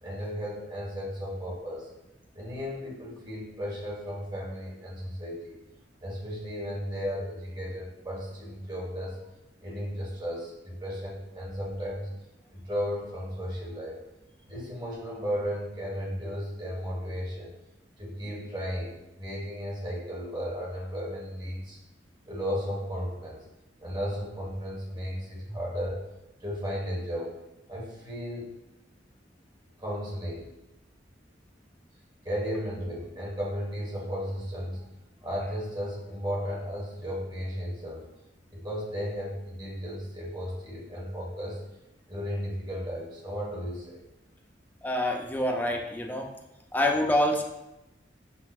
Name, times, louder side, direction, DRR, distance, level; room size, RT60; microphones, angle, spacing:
voice 1, 0.0-1.9 2.3-5.6 6.0-9.2 9.6-12.1 12.5-14.0 14.5-17.5 18.0-21.8 22.3-23.4 23.8-26.0 26.4-27.3 27.7-28.5 29.8-30.5 32.2-34.8 35.2-38.1 38.5-41.6 42.1-44.0, equal, 25° right, -5 dB, 1.5 m, -34 dB
voice 2, 44.8-46.3 46.7-47.4, left 1 dB, 10° left, 1 dB, 0.5 m, -26 dB
5.2 x 4.0 x 2.4 m, 0.95 s
head